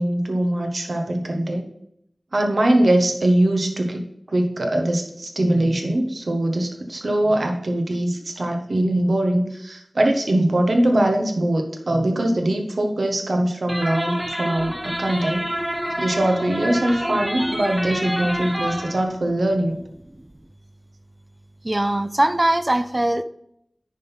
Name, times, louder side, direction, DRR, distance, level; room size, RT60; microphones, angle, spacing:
voice 1, 0.0-1.7 2.3-15.5 16.0-19.8, right 1 dB, 70° right, 3 dB, 1.4 m, -22 dB
sound 1, 13.7-19.0, equal, 10° right, 1.0 m, -28 dB
voice 2, 21.6-23.2, right 1 dB, 30° right, 12 dB, 0.6 m, -21 dB
10.0 x 3.8 x 5.9 m, 0.75 s
wide cardioid pair, 55°, 0 cm